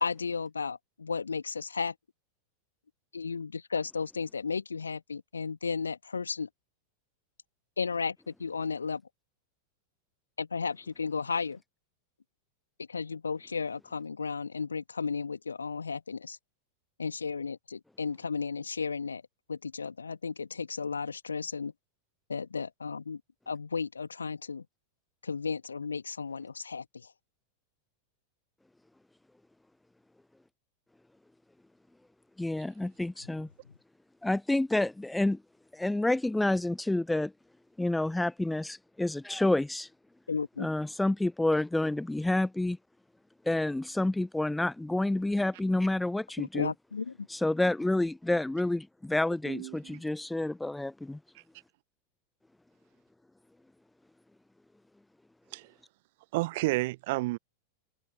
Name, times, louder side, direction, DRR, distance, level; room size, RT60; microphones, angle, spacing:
voice 1, 0.0-1.9 3.1-6.5 7.8-9.0 10.4-11.6 12.9-16.4 17.0-19.2 19.5-21.7 22.3-23.2 23.5-24.6 25.2-27.1 40.3-40.7 46.4-47.1, left 5 dB, 75° left, 2.0 m, -34 dB
voice 2, 32.4-33.5 34.2-35.4 35.7-37.3 37.8-39.9 40.6-42.8 43.5-46.7 47.3-51.2, left 2 dB, 5° left, 0.3 m, -29 dB
voice 3, 49.4-50.0 55.5-55.7 56.3-57.4, right 21 dB, 50° right, 0.9 m, -31 dB
figure-of-eight pair, 90°, 0 cm